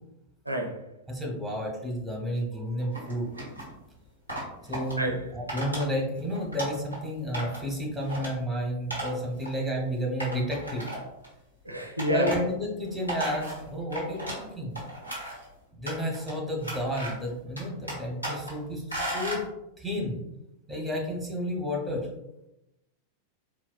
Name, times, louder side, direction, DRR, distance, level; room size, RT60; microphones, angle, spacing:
voice 1, 0.5-0.8 5.0-5.2 11.7-12.3, equal, 85° right, 2 dB, 0.4 m, -28 dB
voice 2, 1.1-3.3 4.7-10.9 12.1-14.8 15.7-19.4 19.8-20.2 20.7-22.1, equal, 5° right, 0 dB, 0.9 m, -31 dB
sound 1, 2.9-3.7 4.3-4.9 5.5-5.9 6.2-7.0 7.3-7.7 8.0-8.3 8.9-9.1 9.4-9.5 10.2-11.3 12.0-12.4 12.8-14.4 14.7-15.4 15.9-16.3 16.6-17.3 17.6-18.5 18.9-19.4, right 1 dB, 85° left, 1.1 m, -35 dB
3.9 x 2.1 x 2.2 m, 0.87 s
figure-of-eight pair, 90°, 0 cm